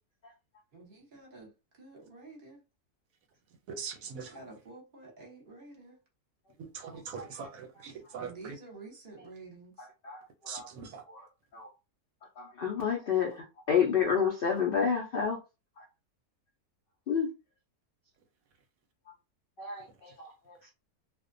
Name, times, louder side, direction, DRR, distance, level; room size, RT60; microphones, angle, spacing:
voice 1, 0.7-1.5 1.8-2.6 4.3-6.0 8.2-9.9, right 3 dB, 40° right, 0.9 m, -50 dB
voice 2, 3.7-4.4 6.6-8.6 10.5-11.0, right 6 dB, 70° right, 0.9 m, -42 dB
voice 3, 9.8-10.7 11.1-11.2 11.5-11.7 12.4-15.4 15.8-15.9 17.1-17.3 19.6-20.6, left 7 dB, 75° left, 0.5 m, -30 dB
2.4 x 2.1 x 2.5 m
omnidirectional pair, 1.6 m